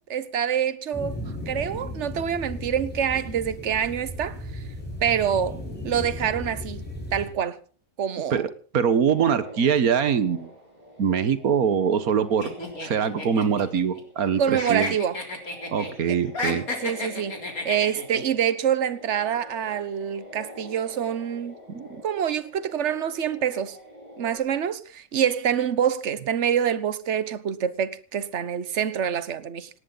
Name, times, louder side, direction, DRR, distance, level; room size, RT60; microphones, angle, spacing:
voice 1, 0.1-1.2 1.5-4.6 5.0-5.6 5.8-6.8 7.1-7.6 8.0-8.4 14.4-15.2 16.1-16.2 16.5-17.3 17.6-21.5 22.0-23.8 24.2-29.7, right 8 dB, 55° right, 1.4 m, -26 dB
sound 1, 0.9-7.3, left 1 dB, 5° left, 7.2 m, -35 dB
voice 2, 8.7-10.5 11.0-12.5 12.8-15.0 15.7-16.7 21.7-21.9, right 7 dB, 80° right, 1.8 m, -23 dB
sound 2, 9.0-24.4, equal, 30° right, 7.6 m, -46 dB
sound 3, 12.4-14.3 14.5-15.9 16.3-18.2, left 2 dB, 80° left, 4.3 m, -32 dB
18.5 x 18.5 x 4.0 m
omnidirectional pair, 1.5 m